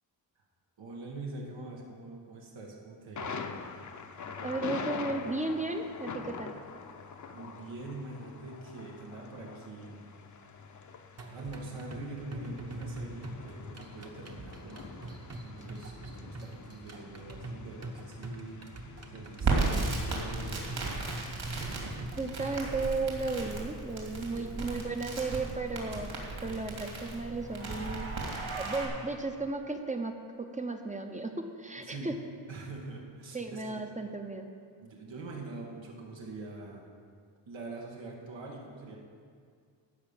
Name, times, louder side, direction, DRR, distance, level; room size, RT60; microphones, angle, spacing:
voice 1, 0.8-3.5 7.3-10.1 10.7-11.0 11.3-21.8 24.3-24.5 28.8-29.0 31.8-32.1 32.5-33.7 34.8-36.8 37.5-39.0, right 3 dB, 90° right, -2 dB, 1.9 m, -44 dB
Thunder, 3.2-20.6, left 5 dB, 40° left, 0.7 m, -45 dB
voice 2, 4.4-6.5 22.2-28.1 28.5-32.2 33.3-34.5, right 3 dB, 15° right, 5 dB, 0.7 m, -35 dB
sound 1, 11.2-23.2, right 2 dB, 35° right, 1.1 m, -43 dB
Crackle, 19.4-28.8, right 3 dB, 55° right, 2.7 m, -35 dB
14.0 x 5.6 x 8.9 m, 2.1 s
wide cardioid pair, 180°, 44 cm